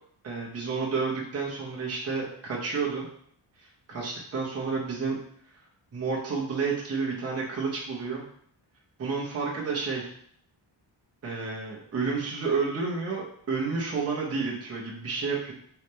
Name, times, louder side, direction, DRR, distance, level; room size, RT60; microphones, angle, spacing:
voice 1, 0.2-3.1 3.6-5.2 5.9-8.2 9.0-10.1 11.2-15.5, right 4 dB, 30° right, -3 dB, 0.9 m, -30 dB
3.5 x 3.3 x 4.2 m, 0.65 s
wide cardioid pair, 180°, 47 cm